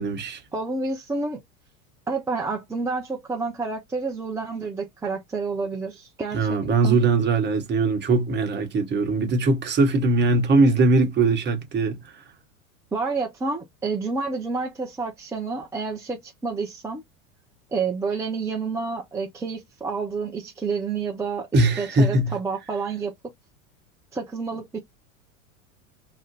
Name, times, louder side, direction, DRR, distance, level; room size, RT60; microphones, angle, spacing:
voice 1, 0.0-0.4 6.3-12.0 21.5-22.4, right 3 dB, 25° right, 0.9 m, -21 dB
voice 2, 0.5-1.4 2.1-7.0 12.9-17.0 17.7-23.1 24.1-24.8, right 4 dB, 10° right, 0.4 m, -29 dB
2.5 x 2.1 x 3.7 m
hypercardioid pair, 90°, 42 cm